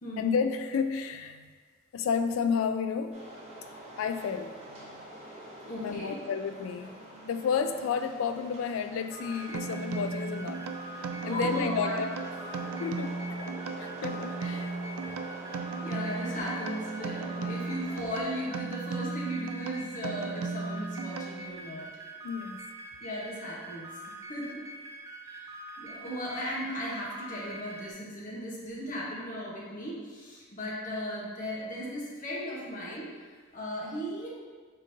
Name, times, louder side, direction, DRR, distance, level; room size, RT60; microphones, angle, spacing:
voice 1, 0.2-1.5 1.9-3.2 4.0-5.0 5.8-7.0 7.3-10.7 11.3-12.1 12.4-13.5 13.8-14.8 15.9-16.1 17.4-17.6 22.2-22.6, left 6 dB, 70° left, 9 dB, 0.3 m, -32 dB
sound 1, 3.1-18.5, right 1 dB, 30° right, 0.8 m, -46 dB
voice 2, 5.6-6.2 11.2-11.9 15.5-21.9 23.0-23.9 24.3-24.6 25.2-34.3, equal, 40° left, -5 dB, 1.0 m, -36 dB
sound 2, 9.1-27.9, right 1 dB, 15° right, 0.3 m, -45 dB
sound 3, 9.5-21.7, right 4 dB, 90° right, 0.4 m, -36 dB
5.1 x 3.8 x 2.7 m, 1.5 s
head